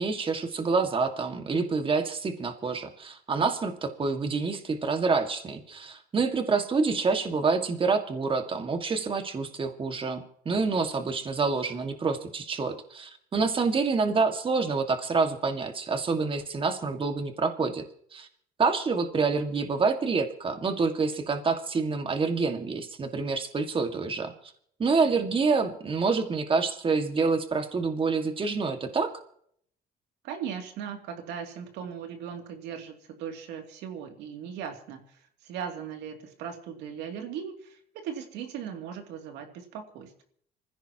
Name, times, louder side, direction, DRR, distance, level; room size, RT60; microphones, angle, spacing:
voice 1, 0.0-17.8 18.1-18.3 18.6-24.5 24.8-29.1, right 4 dB, 30° right, 6 dB, 2.0 m, -27 dB
voice 2, 30.2-40.2, right 8 dB, 90° right, 4 dB, 2.8 m, -38 dB
26.0 x 16.0 x 3.0 m, 0.64 s
cardioid pair, 110°, 17 cm